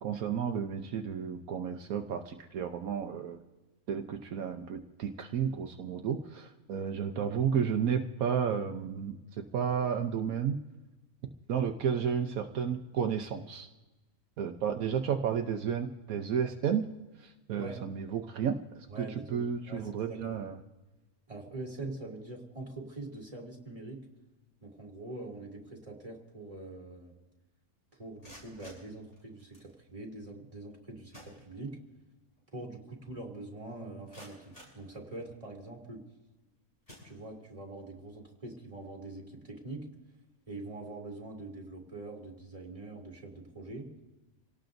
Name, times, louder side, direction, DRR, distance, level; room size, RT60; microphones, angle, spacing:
voice 1, 0.0-3.4 3.9-10.6 11.5-13.7 14.4-16.8 17.2-20.6, right 7 dB, 75° right, 4 dB, 1.2 m, -32 dB
voice 2, 18.9-20.4 21.3-24.0 24.6-27.1 28.0-31.8 32.5-36.0 37.0-39.9 40.5-43.9, right 2 dB, 20° right, -1 dB, 2.8 m, -44 dB
sound 1, 28.0-29.7 30.7-30.8 31.1-32.0 32.4-32.5 33.0-33.1 33.7-35.5 36.2-36.4 36.8-37.7, equal, 40° left, 6.9 m, -55 dB
27.0 x 18.0 x 2.6 m, 1.1 s
omnidirectional pair, 1.5 m